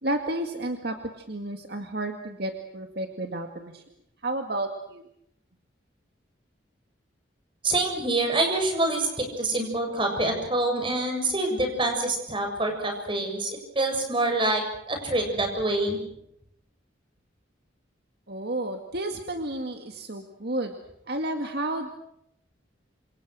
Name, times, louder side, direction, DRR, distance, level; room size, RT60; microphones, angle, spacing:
voice 1, 0.0-3.8 4.2-5.1 18.3-20.8 21.1-21.9, right 1 dB, 55° right, 5 dB, 2.1 m, -31 dB
voice 2, 7.6-16.0, right 2 dB, 25° right, 4 dB, 7.3 m, -26 dB
28.0 x 27.5 x 6.3 m, 0.75 s
head